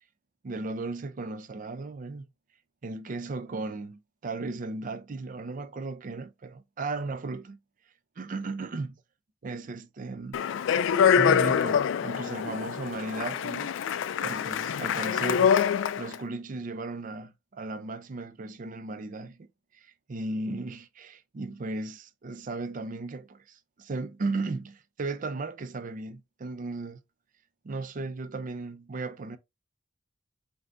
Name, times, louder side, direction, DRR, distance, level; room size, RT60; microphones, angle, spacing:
voice 1, 0.4-2.3 2.8-7.6 8.2-9.0 9.4-10.4 11.2-27.0 27.6-29.4, right 3 dB, 45° right, 0.5 m, -36 dB
Speech, 10.3-16.2, left 7 dB, 75° left, 0.3 m, -25 dB
5.4 x 2.7 x 2.5 m
head